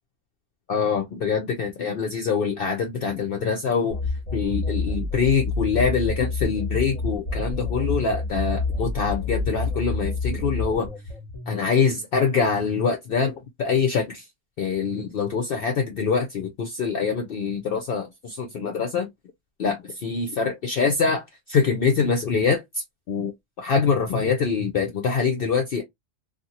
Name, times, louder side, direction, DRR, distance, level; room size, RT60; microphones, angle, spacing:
voice 1, 0.7-4.0 4.3-10.9 11.5-14.2 14.6-19.1 19.6-23.3 23.6-25.8, left 5 dB, 60° left, 0.6 m, -24 dB
sound 1, 3.9-11.5, left 3 dB, 30° left, 0.8 m, -28 dB
2.7 x 2.5 x 2.7 m
omnidirectional pair, 1.3 m